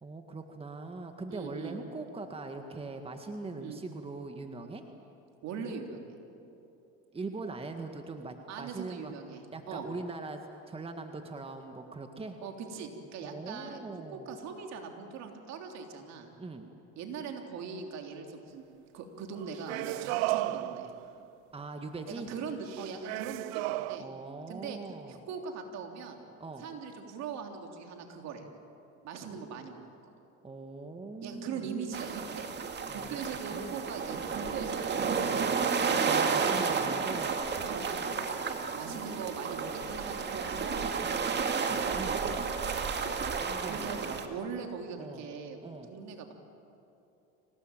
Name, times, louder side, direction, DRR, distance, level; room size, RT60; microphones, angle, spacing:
voice 1, 0.0-4.8 7.1-9.1 9.5-12.4 13.2-14.3 16.4-16.7 21.5-22.3 24.0-25.2 26.4-26.7 30.4-31.7 32.9-33.2 33.5-33.8 36.0-37.4 41.7-42.3 43.4-44.1 45.0-45.3 45.6-45.9, right 3 dB, 20° right, 5 dB, 1.8 m, -41 dB
voice 2, 1.3-1.8 3.6-3.8 5.4-6.1 8.5-9.9 12.4-13.8 14.1-16.3 17.0-18.6 18.9-20.9 22.1-24.1 24.5-24.8 25.1-26.2 26.6-28.4 29.0-30.1 31.2-32.5 32.9-36.9 37.7-41.4 43.0-43.2 43.7-45.6 45.9-46.3, right 6 dB, 60° right, 3 dB, 3.4 m, -41 dB
sound 1, 19.4-21.3 22.7-24.0, right 17 dB, 75° right, 0.8 m, -33 dB
sound 2, 31.9-44.3, right 5 dB, 35° right, 2.2 m, -32 dB
25.5 x 18.5 x 9.1 m, 3.0 s
supercardioid pair, 95°, 31 cm